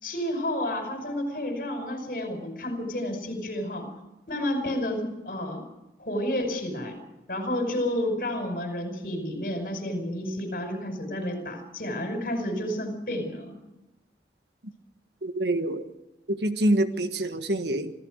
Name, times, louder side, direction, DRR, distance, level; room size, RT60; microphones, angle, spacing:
voice 1, 0.0-3.9 4.3-5.6 6.0-7.0 7.3-13.6, left 1 dB, 50° left, 5 dB, 5.6 m, -30 dB
voice 2, 15.2-15.8 16.3-17.9, right 1 dB, 70° right, 9 dB, 1.5 m, -26 dB
26.0 x 15.5 x 6.5 m, 0.96 s
head